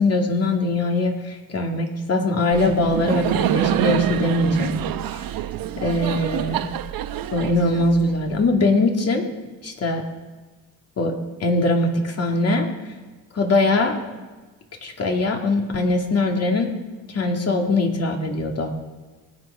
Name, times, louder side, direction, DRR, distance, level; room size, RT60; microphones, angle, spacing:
voice 1, 0.0-4.8 5.1-5.2 5.8-6.7 7.3-9.3 9.6-10.0 11.0-12.9 13.3-14.0 14.8-16.7 17.1-18.7, left 2 dB, 40° left, 2 dB, 2.5 m, -22 dB
Laughter, 2.5-8.3, right 11 dB, 65° right, 1.0 m, -26 dB
25.0 x 8.5 x 5.0 m, 1.2 s
cardioid pair, 100°, 37 cm